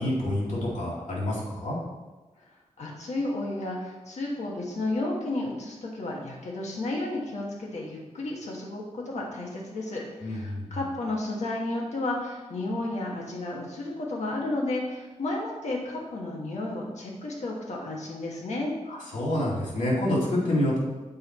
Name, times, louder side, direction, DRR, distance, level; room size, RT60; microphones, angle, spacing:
voice 1, 0.0-1.8 10.2-10.8 18.9-20.8, left 1 dB, 85° left, -5 dB, 2.3 m, -27 dB
voice 2, 2.8-18.7, left 2 dB, 70° left, -2 dB, 1.4 m, -32 dB
7.6 x 4.6 x 4.3 m, 1.2 s
wide cardioid pair, 175°, 12 cm